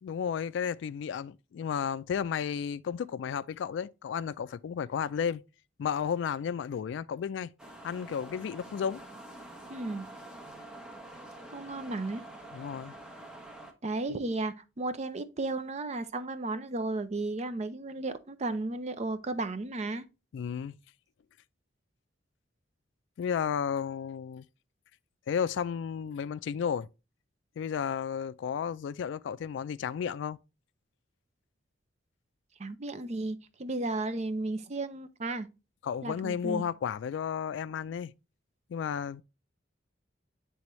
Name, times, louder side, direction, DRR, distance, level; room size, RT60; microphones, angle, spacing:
voice 1, 0.0-5.4 5.8-7.5 7.8-9.0 12.5-12.9 20.3-20.7 23.2-24.4 25.3-26.9 27.6-30.4 35.8-38.1 38.7-39.2, left 7 dB, 70° left, 0.3 m, -33 dB
sound 1, 7.6-13.7, right 1 dB, 5° right, 0.8 m, -47 dB
voice 2, 9.7-10.1 11.5-12.2 13.8-20.0 32.6-35.5 36.0-36.6, right 2 dB, 35° right, 0.5 m, -34 dB
8.9 x 3.4 x 3.0 m
head